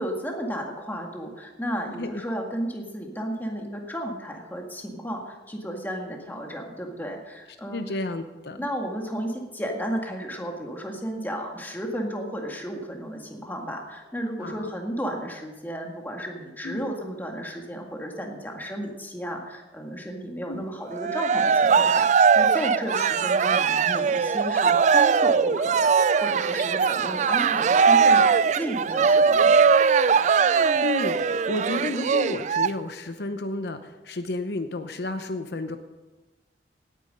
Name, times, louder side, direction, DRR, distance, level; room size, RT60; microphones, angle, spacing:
voice 1, 0.0-7.8 8.6-28.3 28.6-29.8, equal, 10° left, 1 dB, 1.9 m, -33 dB
voice 2, 1.9-2.2 7.7-8.6 14.4-14.7 16.6-16.9 20.5-20.6 30.8-35.8, left 2 dB, 60° left, 8 dB, 0.8 m, -32 dB
Cheering, 20.9-32.7, right 5 dB, 40° right, 0.3 m, -20 dB
17.5 x 9.3 x 5.4 m, 1.2 s
head